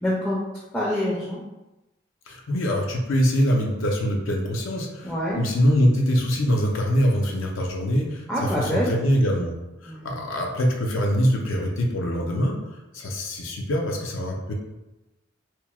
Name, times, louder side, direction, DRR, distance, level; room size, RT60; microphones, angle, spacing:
voice 1, 0.0-0.4 0.7-1.4 5.0-5.4 8.3-8.9 9.9-10.1, equal, 5° left, -7 dB, 0.4 m, -26 dB
voice 2, 2.3-9.6 9.8-12.6 12.9-14.5, equal, 80° left, 1 dB, 0.5 m, -23 dB
3.0 x 2.0 x 2.2 m, 0.99 s
head